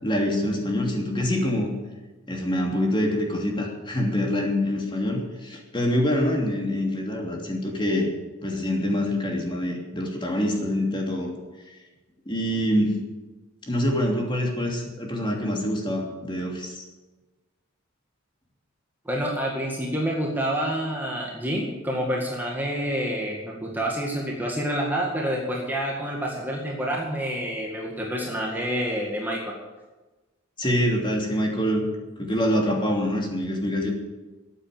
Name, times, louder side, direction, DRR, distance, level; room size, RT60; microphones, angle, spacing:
voice 1, 0.0-1.7 2.3-8.1 8.4-11.3 12.3-13.0 13.7-16.8 30.6-31.9 32.2-33.9, left 1 dB, 25° left, 0 dB, 3.0 m, -25 dB
voice 2, 19.1-29.5, equal, 10° right, -2 dB, 2.0 m, -28 dB
14.0 x 9.0 x 9.3 m, 1.2 s
head